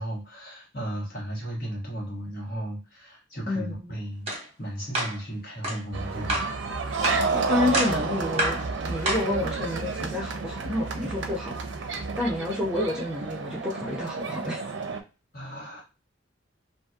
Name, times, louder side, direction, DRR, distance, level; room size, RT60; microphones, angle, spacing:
voice 1, 0.0-4.3 4.6-6.4 15.3-15.8, right 1 dB, 50° left, -3 dB, 1.4 m, -35 dB
voice 2, 3.5-3.9 7.3-8.6 8.9-11.6 12.2-14.6, left 2 dB, 5° right, -5 dB, 0.7 m, -29 dB
sound 1, 4.3-4.4 4.9-5.2 5.6-5.8 6.3-6.5 7.0-7.3 7.7-8.0 8.4-8.6 9.1-9.3, right 1 dB, 35° right, 0.9 m, -27 dB
sound 2, 5.9-15.0, right 4 dB, 75° right, 0.5 m, -30 dB
2.8 x 2.5 x 2.4 m, 0.32 s
head